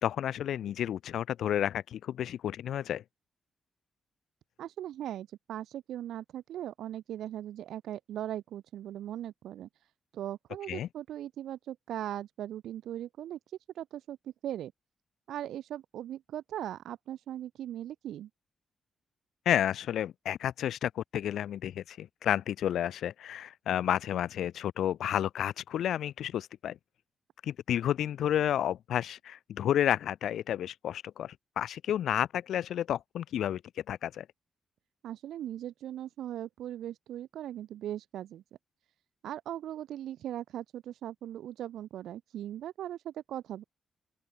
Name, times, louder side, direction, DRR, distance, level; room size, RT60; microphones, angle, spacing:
voice 1, 0.0-3.0 10.7-10.9 19.5-26.8 27.4-33.6 33.9-34.3, left 10 dB, 80° left, 0.6 m, -31 dB
voice 2, 4.6-9.7 10.1-13.4 13.8-14.7 15.3-18.3 35.0-38.4 39.2-43.6, right 11 dB, 85° right, 0.9 m, -39 dB
open air
cardioid pair, 65°, 0 cm